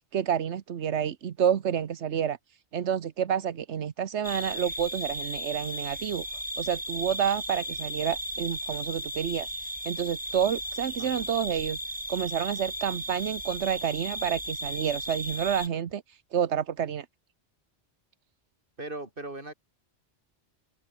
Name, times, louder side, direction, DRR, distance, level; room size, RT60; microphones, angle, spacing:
voice 1, 0.1-2.4 2.7-6.2 6.6-11.8 12.1-17.0, right 8 dB, 85° right, 1.3 m, -29 dB
sound 1, 4.2-15.7, equal, 5° right, 3.5 m, -35 dB
voice 2, 18.8-19.5, right 2 dB, 50° right, 4.6 m, -38 dB
omnidirectional pair, 1.1 m